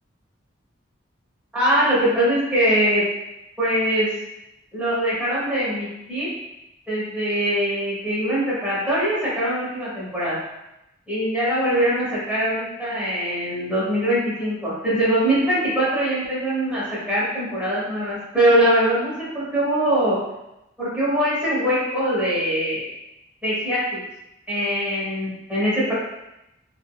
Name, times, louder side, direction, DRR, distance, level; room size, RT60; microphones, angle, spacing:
voice 1, 1.5-3.0 3.6-4.1 4.7-6.3 6.9-10.4 11.1-20.2 20.8-22.8 23.4-24.0 24.5-25.9, equal, 5° right, -10 dB, 1.2 m, -22 dB
3.7 x 2.4 x 2.3 m, 0.89 s
head